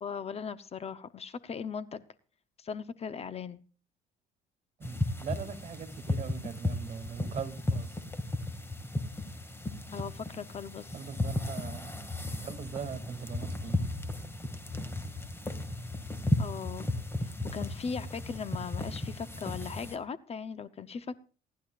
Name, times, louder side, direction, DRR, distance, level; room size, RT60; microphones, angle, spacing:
voice 1, 0.0-2.0 2.6-3.6 9.9-11.0 16.4-16.9 17.2-21.2, left 6 dB, 35° left, 0.9 m, -39 dB
sound 1, 4.8-20.0, left 1 dB, 15° left, 2.1 m, -35 dB
voice 2, 4.8-8.0 10.9-12.1 12.4-13.8, right 7 dB, 40° right, 2.5 m, -41 dB
28.5 x 11.5 x 2.5 m
cardioid pair, 110°, 17 cm